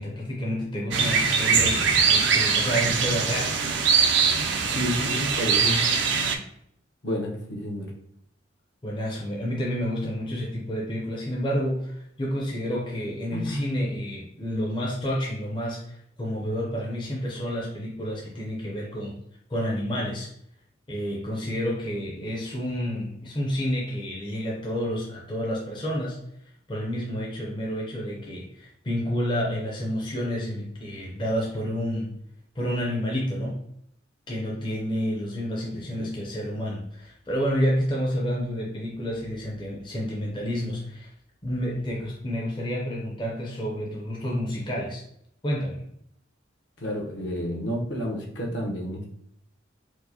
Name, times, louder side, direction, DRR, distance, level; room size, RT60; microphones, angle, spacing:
voice 1, 0.0-3.6 8.8-19.2 19.5-20.3 20.9-26.2 26.7-32.1 32.6-33.6 34.3-41.1 41.4-45.0 45.4-45.9, equal, 25° left, -3 dB, 0.5 m, -29 dB
sound 1, 0.9-6.4, right 5 dB, 65° right, 0.4 m, -22 dB
voice 2, 4.7-5.8 7.0-7.9 13.3-13.7 22.1-22.2 35.7-36.1 46.8-49.1, equal, 65° left, -1 dB, 0.8 m, -30 dB
4.5 x 2.1 x 2.7 m, 0.74 s
head